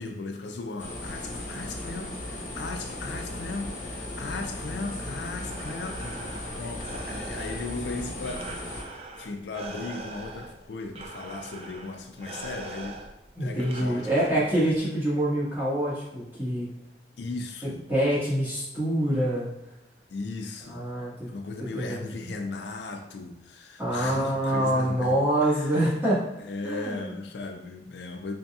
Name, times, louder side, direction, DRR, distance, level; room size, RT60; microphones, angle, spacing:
voice 1, 0.0-13.0 13.4-14.5 17.2-17.8 20.1-20.9 21.3-25.9 26.4-28.3, left 3 dB, 75° left, 4 dB, 0.4 m, -37 dB
sound 1, 0.8-8.8, left 1 dB, 45° left, 0.9 m, -36 dB
Breathing, 5.4-14.8, right 2 dB, 35° right, 0.4 m, -43 dB
voice 2, 13.3-16.7 17.9-19.5 20.7-21.3 21.6-22.0 23.8-26.2 26.6-27.1, right 1 dB, 10° right, -10 dB, 1.5 m, -26 dB
4.1 x 3.4 x 2.3 m, 0.93 s
head